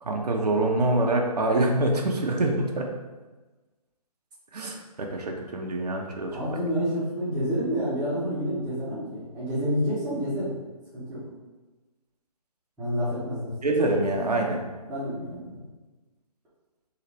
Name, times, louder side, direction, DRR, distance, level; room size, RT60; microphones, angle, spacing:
voice 1, 0.0-2.9 4.5-6.4 13.6-14.6, right 2 dB, 75° right, 1 dB, 0.7 m, -25 dB
voice 2, 6.3-10.6 10.9-11.3 12.8-13.5 14.9-15.6, equal, 5° right, -17 dB, 0.8 m, -29 dB
3.8 x 2.4 x 3.3 m, 1.2 s
figure-of-eight pair, 150°, 20 cm